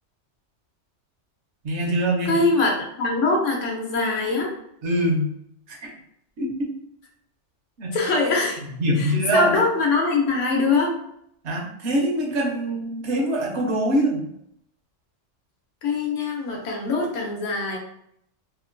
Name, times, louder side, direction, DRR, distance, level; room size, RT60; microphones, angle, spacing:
voice 1, 1.6-2.4 4.8-5.3 5.7-5.9 6.4-6.7 7.8-7.9 8.8-9.6 11.4-14.3, right 1 dB, 70° right, 0 dB, 0.9 m, -23 dB
voice 2, 2.2-4.5 7.9-8.6 9.0-10.9 15.8-17.8, left 3 dB, 80° left, 0 dB, 1.0 m, -23 dB
2.9 x 2.1 x 2.5 m, 0.73 s
omnidirectional pair, 1.3 m